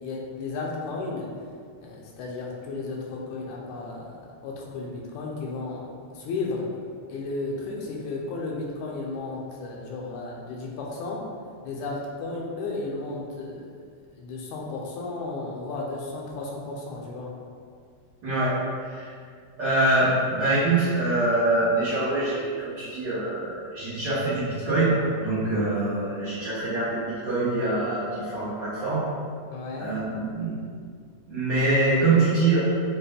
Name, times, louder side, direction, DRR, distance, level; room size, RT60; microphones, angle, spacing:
voice 1, 0.0-1.3 1.8-6.7 7.1-11.3 11.6-13.8 14.2-17.3 29.5-29.9, left 3 dB, 85° left, -1 dB, 2.0 m, -34 dB
voice 2, 18.2-19.1 19.6-29.0 29.8-30.6 31.3-32.6, right 2 dB, 65° right, -13 dB, 1.1 m, -24 dB
6.4 x 2.2 x 3.4 m, 2.1 s
omnidirectional pair, 3.3 m